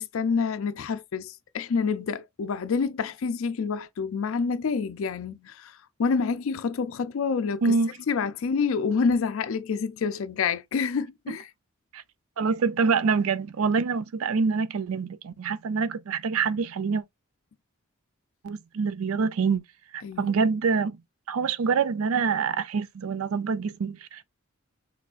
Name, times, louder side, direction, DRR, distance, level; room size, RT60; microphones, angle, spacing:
voice 1, 0.0-7.7 8.1-11.5 20.0-20.3, left 5 dB, 70° left, 0.4 m, -28 dB
voice 2, 7.6-8.0 11.3-11.4 11.9-12.0 12.4-17.0 18.4-19.6 19.9-21.0 21.3-24.2, right 5 dB, 80° right, 0.5 m, -26 dB
6.0 x 3.1 x 2.4 m
head